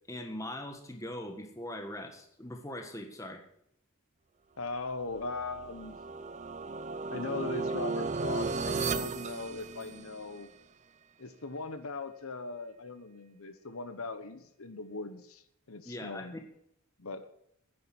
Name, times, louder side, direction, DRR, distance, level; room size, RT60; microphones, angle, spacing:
voice 1, 0.1-3.4 15.8-16.4, left 1 dB, 15° left, 4 dB, 1.6 m, -41 dB
voice 2, 4.6-6.0 7.1-10.5 11.2-15.4 15.7-16.3 17.0-17.2, left 3 dB, 80° left, 11 dB, 1.1 m, -39 dB
sound 1, 5.1-10.3, right 4 dB, 35° right, 0.5 m, -35 dB
10.5 x 9.7 x 7.7 m, 0.74 s
head